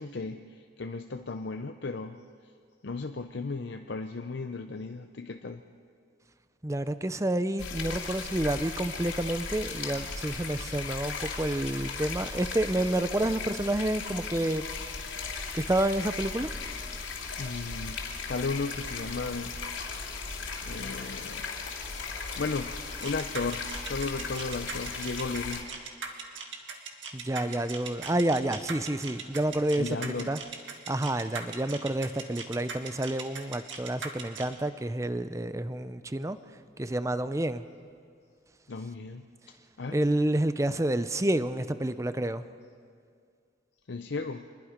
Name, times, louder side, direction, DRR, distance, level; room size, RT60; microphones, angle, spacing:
voice 1, 0.0-2.2 2.8-5.6 17.4-19.6 20.6-21.5 22.4-25.7 29.8-30.3 38.7-40.0 43.9-44.5, left 3 dB, 65° left, 6 dB, 0.6 m, -35 dB
voice 2, 6.6-14.6 15.2-16.5 27.1-30.4 30.9-37.6 39.9-42.5, right 1 dB, 15° right, 12 dB, 0.5 m, -29 dB
sound 1, 7.6-25.6, left 4 dB, 80° left, 2.9 m, -37 dB
sound 2, 23.0-34.5, right 5 dB, 75° right, 1.9 m, -39 dB
25.5 x 21.0 x 5.1 m, 2.2 s
head